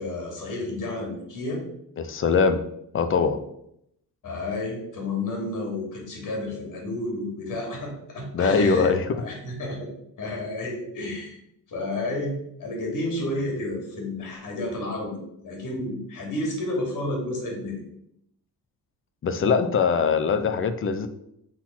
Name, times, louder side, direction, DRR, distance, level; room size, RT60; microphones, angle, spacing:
voice 1, 0.0-1.6 4.2-9.9 10.2-11.3 11.7-17.8, left 2 dB, 55° left, 0 dB, 2.8 m, -31 dB
voice 2, 2.0-2.6 2.9-3.4 8.3-9.1 19.2-21.1, left 5 dB, 35° left, 9 dB, 0.6 m, -22 dB
6.4 x 4.1 x 5.9 m, 0.76 s
cardioid pair, 160°, 38 cm